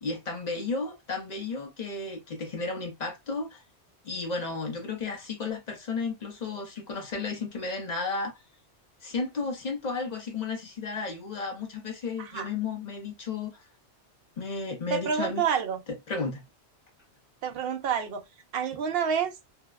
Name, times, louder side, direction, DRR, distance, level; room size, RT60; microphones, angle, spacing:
voice 1, 0.0-3.6 4.0-8.3 9.0-13.6 14.4-15.5 16.1-16.4, left 4 dB, 45° left, 0.6 m, -33 dB
voice 2, 14.9-15.8 17.4-18.2 18.5-19.3, right 7 dB, 65° right, 0.8 m, -28 dB
2.7 x 2.1 x 2.2 m
omnidirectional pair, 1.2 m